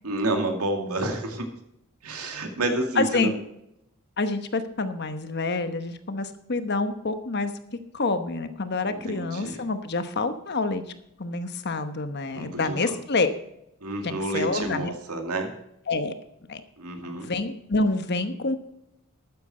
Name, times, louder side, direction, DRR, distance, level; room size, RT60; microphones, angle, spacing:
voice 1, 0.0-1.5 2.0-3.4 8.9-9.6 12.3-13.0 13.8-15.5 16.8-17.3, right 2 dB, 85° right, 4 dB, 2.3 m, -29 dB
voice 2, 2.9-3.3 4.2-7.5 7.9-10.8 11.2-13.3 14.0-14.9 15.9-16.1 16.5-16.6 17.0-18.6, left 3 dB, 50° left, 10 dB, 1.0 m, -27 dB
12.5 x 9.3 x 4.3 m, 0.80 s
head